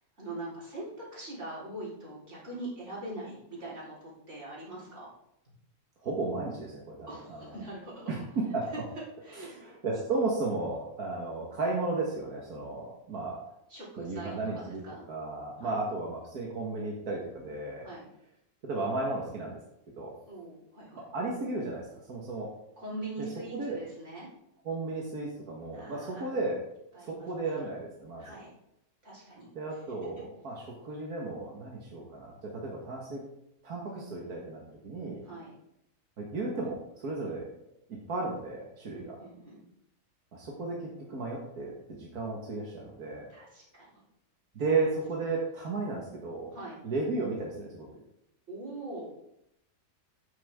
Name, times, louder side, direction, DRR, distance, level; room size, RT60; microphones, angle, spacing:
voice 1, 0.2-5.1 7.1-8.0 9.2-9.6 13.7-15.0 15.6-15.8 17.8-18.1 20.3-21.0 22.8-24.3 25.7-26.3 26.9-27.5 28.2-28.5 29.0-29.5 35.2-35.5 38.9-39.6 43.3-44.0 46.5-46.8 48.5-49.1, right 2 dB, 50° right, -7 dB, 4.3 m, -42 dB
voice 2, 6.0-7.5 8.1-8.6 9.4-13.4 14.0-14.8 15.1-17.9 18.6-19.6 20.0-20.2 21.1-22.5 23.5-23.8 24.7-26.6 27.0-28.4 29.5-33.2 33.6-35.2 36.2-37.7 38.1-39.2 40.3-43.3 44.5-46.5 46.8-48.0, right 3 dB, 85° right, -2 dB, 2.0 m, -34 dB
9.4 x 9.0 x 3.6 m, 0.79 s
omnidirectional pair, 1.6 m